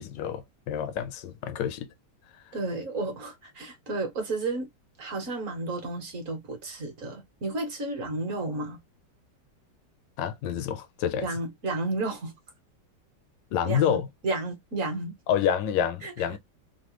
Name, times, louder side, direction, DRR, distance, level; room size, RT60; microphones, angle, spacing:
voice 1, 0.0-1.9 10.2-11.3 13.5-14.1 15.3-16.4, left 9 dB, 85° left, 1.3 m, -28 dB
voice 2, 2.5-4.7 5.0-8.8 11.2-12.4 13.6-14.0 14.2-15.1 16.0-16.1, right 2 dB, 50° right, 1.3 m, -32 dB
3.9 x 2.1 x 3.0 m
omnidirectional pair, 1.9 m